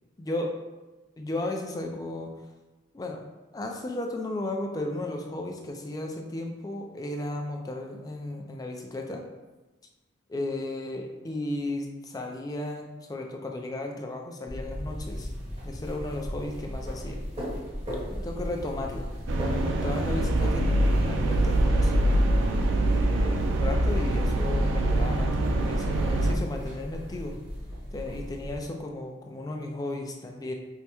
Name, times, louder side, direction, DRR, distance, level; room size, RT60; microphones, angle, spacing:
voice 1, 0.2-0.5 1.2-2.3 2.9-3.2 3.5-9.2 10.3-15.3 15.6-17.2 18.0-19.1 19.5-22.2 22.8-27.4 27.9-30.5, left 2 dB, 20° left, 2 dB, 0.3 m, -35 dB
sound 1, 14.5-28.6, equal, 35° right, 1.2 m, -37 dB
sound 2, 19.3-26.3, right 1 dB, 70° right, 0.4 m, -24 dB
4.6 x 2.1 x 2.9 m, 1.1 s
head